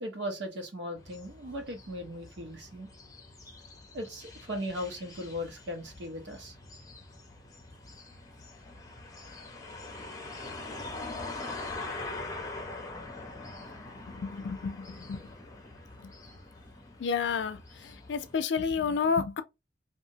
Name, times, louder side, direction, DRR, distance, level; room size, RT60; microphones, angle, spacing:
voice 1, 0.0-2.9 3.9-6.6, equal, 80° right, 0.9 m, -38 dB
sound 1, 1.0-18.4, left 2 dB, 20° left, 0.7 m, -44 dB
voice 2, 14.0-15.3 17.0-19.4, left 5 dB, 80° left, 0.4 m, -31 dB
2.8 x 2.3 x 2.7 m
head